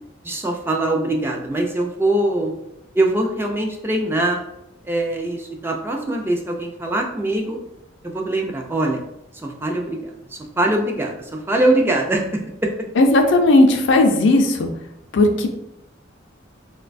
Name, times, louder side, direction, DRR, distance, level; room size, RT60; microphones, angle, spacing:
voice 1, 0.2-2.5 2.9-4.4 4.8-7.6 8.0-9.0 9.4-12.7, right 1 dB, 10° right, 1 dB, 0.3 m, -22 dB
voice 2, 13.0-14.7 15.1-15.5, left 2 dB, 65° left, 5 dB, 0.4 m, -15 dB
3.8 x 2.2 x 2.4 m, 0.85 s
head